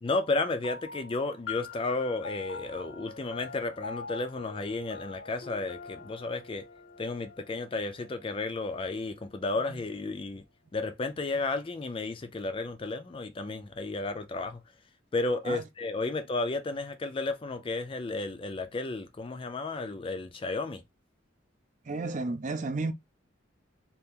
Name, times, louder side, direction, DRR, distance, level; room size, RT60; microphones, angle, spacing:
voice 1, 0.0-6.6 7.0-10.4 10.7-14.6 15.1-20.8, left 3 dB, 25° left, 0.4 m, -33 dB
sound 1, 0.6-9.5, left 4 dB, 80° left, 0.7 m, -44 dB
voice 2, 21.9-22.9, right 3 dB, 40° right, 0.5 m, -32 dB
2.8 x 2.5 x 3.5 m
head